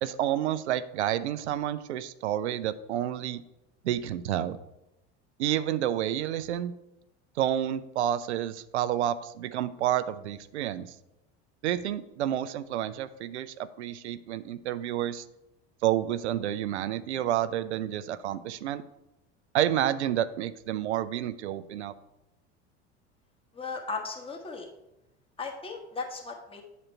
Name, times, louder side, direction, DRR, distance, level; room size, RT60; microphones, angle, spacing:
voice 1, 0.0-3.4 3.8-4.6 5.4-6.7 7.4-10.9 11.6-15.2 15.8-18.8 19.5-21.9, right 11 dB, 90° right, 14 dB, 0.5 m, -29 dB
voice 2, 23.5-24.7 25.4-26.6, left 4 dB, 15° left, 1 dB, 1.3 m, -36 dB
8.7 x 4.0 x 4.4 m, 0.91 s
hypercardioid pair, 85°, 33 cm